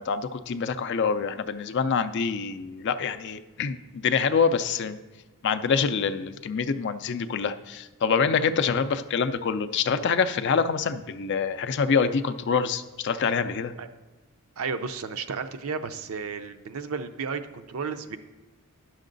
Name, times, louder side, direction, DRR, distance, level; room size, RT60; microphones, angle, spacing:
voice 1, 0.0-5.0 5.4-13.7, left 6 dB, 50° left, 11 dB, 0.4 m, -26 dB
voice 2, 14.6-18.2, right 5 dB, 70° right, 9 dB, 0.5 m, -33 dB
9.9 x 6.4 x 3.9 m, 1.2 s
head